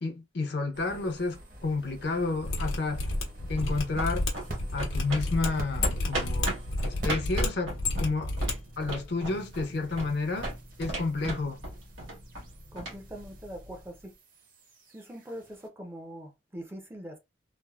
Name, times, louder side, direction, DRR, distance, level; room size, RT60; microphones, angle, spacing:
voice 1, 0.0-3.1 3.5-4.2 4.7-6.6 6.8-8.3 8.8-11.6, left 3 dB, 55° left, 0.6 m, -31 dB
sound 1, 0.7-7.4 7.6-15.7, right 1 dB, 45° right, 0.7 m, -47 dB
Mechanisms, 2.4-8.5 8.8-8.9, left 2 dB, 90° left, 0.9 m, -31 dB
sound 2, 3.2-13.9, right 1 dB, 85° right, 1.3 m, -38 dB
voice 2, 12.7-14.1 14.9-17.2, equal, 10° right, 0.4 m, -42 dB
3.2 x 2.0 x 2.2 m
head